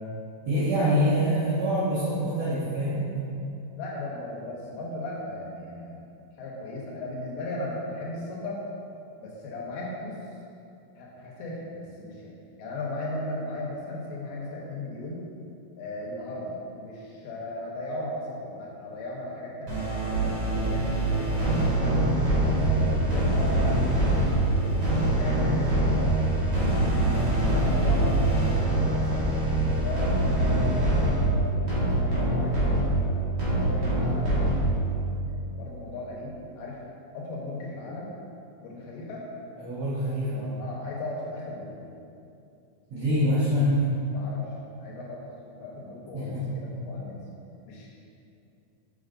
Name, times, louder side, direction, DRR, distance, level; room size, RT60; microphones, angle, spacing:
voice 1, 0.5-3.3 27.1-27.4 39.6-40.5 42.9-43.9 46.1-46.5, equal, 75° right, -10 dB, 1.6 m, -25 dB
voice 2, 3.8-6.0 6.4-8.6 9.2-10.2 11.0-15.2 15.8-22.2 22.4-24.2 24.6-26.2 26.6-26.9 27.5-29.3 29.7-33.2 33.5-36.8 37.1-38.1 38.6-39.3 40.6-41.9 44.1-44.5 44.8-47.2 47.6-47.9, left 1 dB, 85° left, -4 dB, 3.0 m, -37 dB
sound 1, 19.7-35.1, right 1 dB, 50° right, 1.7 m, -24 dB
6.8 x 6.4 x 2.5 m, 2.6 s
omnidirectional pair, 4.3 m